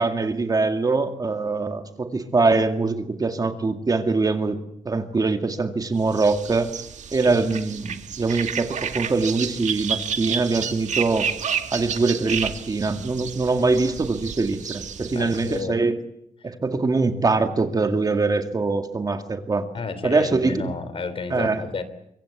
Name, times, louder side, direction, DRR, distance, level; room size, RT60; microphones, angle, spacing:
voice 1, 0.0-6.7 7.1-11.3 11.7-16.0 16.4-19.7 20.0-20.7 21.3-21.6, right 3 dB, 30° right, 7 dB, 2.1 m, -23 dB
sound 1, 6.1-15.6, right 7 dB, 70° right, 2.0 m, -31 dB
voice 2, 15.1-15.9 16.4-16.5 19.7-21.8, left 4 dB, 45° left, 13 dB, 3.3 m, -31 dB
25.0 x 24.0 x 8.4 m, 0.76 s
wide cardioid pair, 140°, 13 cm